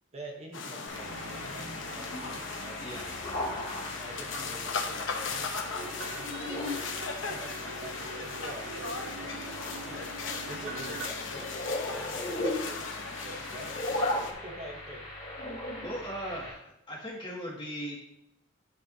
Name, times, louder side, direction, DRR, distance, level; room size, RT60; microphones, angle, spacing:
voice 1, 0.1-3.0 3.5-6.7 7.2-9.5 9.8-10.1 10.5-12.8 13.2-13.8 14.3-15.1, right 1 dB, 35° right, 0 dB, 1.1 m, -46 dB
sound 1, 0.5-14.3, left 4 dB, 80° left, 1.0 m, -38 dB
sound 2, 0.9-16.5, left 1 dB, 45° left, 3.1 m, -38 dB
sound 3, 0.9-4.5 5.3-11.1, right 4 dB, 65° right, 0.5 m, -46 dB
voice 2, 15.8-18.0, equal, 25° left, -3 dB, 2.2 m, -38 dB
10.5 x 5.2 x 2.8 m, 0.82 s
head